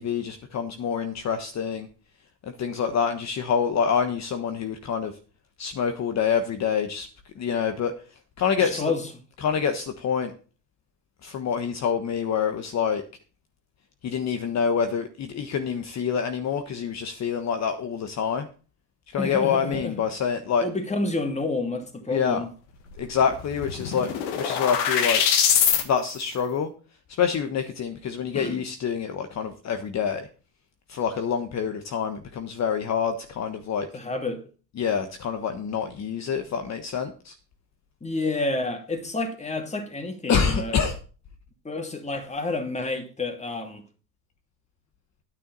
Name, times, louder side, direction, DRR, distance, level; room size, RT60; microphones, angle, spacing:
voice 1, 0.0-1.9 2.4-5.1 5.6-7.9 8.4-8.9 9.4-10.3 11.2-13.0 14.0-18.5 19.1-20.7 22.1-22.4 23.0-24.1 24.3-25.2 25.8-26.7 27.1-30.3 30.9-33.9 34.7-37.3 40.3-41.0, left 7 dB, 45° left, 1.3 m, -26 dB
voice 2, 8.6-9.0 19.2-20.0 20.6-22.5 28.3-28.6 33.9-34.4 38.0-40.8 41.6-43.8, left 2 dB, 15° left, 2.6 m, -29 dB
sound 1, 23.0-23.1 23.3-25.8, left 8 dB, 80° left, 2.1 m, -23 dB
9.9 x 9.4 x 4.1 m
supercardioid pair, 85°, 38 cm